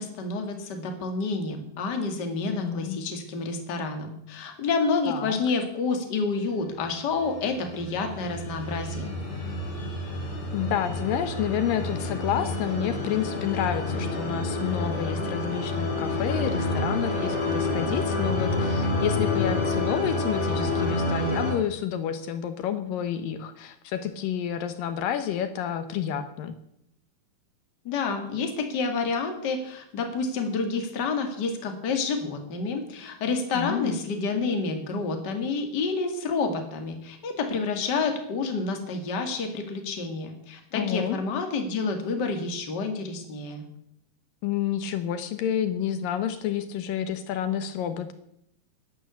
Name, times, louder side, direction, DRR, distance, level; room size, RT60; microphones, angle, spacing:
voice 1, 0.0-9.1 27.8-43.6, left 4 dB, 35° left, 5 dB, 2.2 m, -29 dB
voice 2, 2.5-3.0 5.1-5.4 10.5-26.6 33.5-34.0 40.7-41.2 44.4-48.1, left 9 dB, 75° left, 10 dB, 2.7 m, -29 dB
sound 1, 7.2-21.5, left 2 dB, 55° left, 4.8 m, -28 dB
11.5 x 11.5 x 8.4 m, 0.75 s
omnidirectional pair, 4.1 m